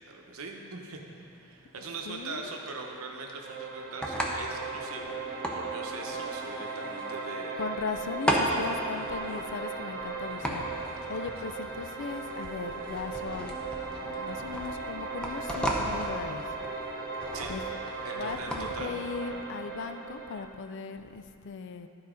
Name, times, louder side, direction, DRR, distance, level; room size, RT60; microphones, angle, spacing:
voice 1, 0.0-7.5 11.0-11.1 17.3-17.5 18.0-19.4, right 3 dB, 70° right, 1 dB, 0.9 m, -41 dB
sound 1, 1.1-18.9, equal, 5° left, 0.7 m, -36 dB
voice 2, 2.1-2.5 7.6-13.6 14.0-16.4 17.5-17.6 18.1-21.9, left 5 dB, 55° left, 9 dB, 0.4 m, -38 dB
sound 2, 3.4-20.4, right 4 dB, 45° right, 1.0 m, -37 dB
12.0 x 4.0 x 5.0 m, 2.6 s
head